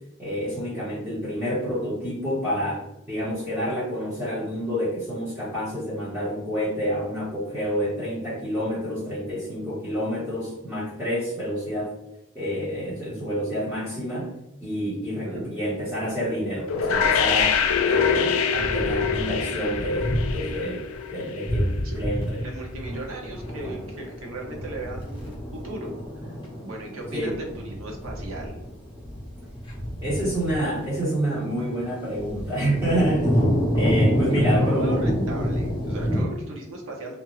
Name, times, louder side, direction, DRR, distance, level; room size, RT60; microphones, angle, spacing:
voice 1, 0.2-11.9 12.3-14.3 14.6-22.4 27.1-27.4 30.0-33.4 33.7-35.0, equal, 10° right, -10 dB, 1.0 m, -28 dB
sound 1, 16.7-21.6, left 6 dB, 90° left, 0.3 m, -24 dB
sound 2, 18.5-20.6 20.9-21.1 21.4-36.2, equal, 25° left, 0.8 m, -28 dB
voice 2, 21.8-26.4 26.6-28.6 34.3-37.2, right 2 dB, 85° right, 0 dB, 0.8 m, -37 dB
2.6 x 2.3 x 3.0 m, 0.87 s
head